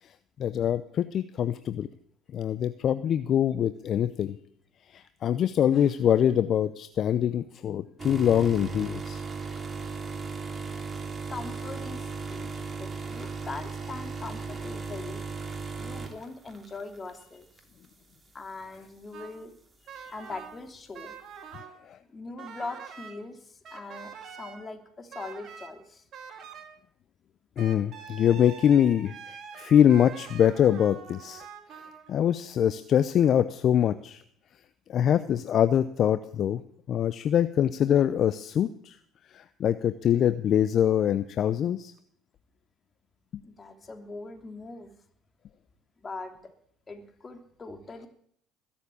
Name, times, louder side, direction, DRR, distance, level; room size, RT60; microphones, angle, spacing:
voice 1, 0.4-1.9 2.3-4.4 4.9-9.2 21.9-22.0 27.6-31.4 32.1-34.2 34.9-36.6 36.9-39.0 39.3-41.9, left 9 dB, 50° left, 12 dB, 0.7 m, -24 dB
sound 1, 8.0-17.2 17.6-17.9 18.7-18.8, right 4 dB, 25° right, 2.8 m, -36 dB
voice 2, 11.3-12.5 12.8-15.3 15.8-17.5 18.3-19.5 19.9-21.1 22.1-26.0 43.4-44.9 46.0-46.3 46.9-48.1, left 3 dB, 30° left, 5 dB, 3.0 m, -41 dB
sound 2, 19.1-19.4 19.9-20.6 20.9-21.8 22.4-23.1 23.6-24.7 25.1-25.7 26.1-26.8 27.6-32.3, right 7 dB, 50° right, 2.8 m, -45 dB
21.0 x 7.2 x 8.6 m, 0.66 s
hypercardioid pair, 70°, 0 cm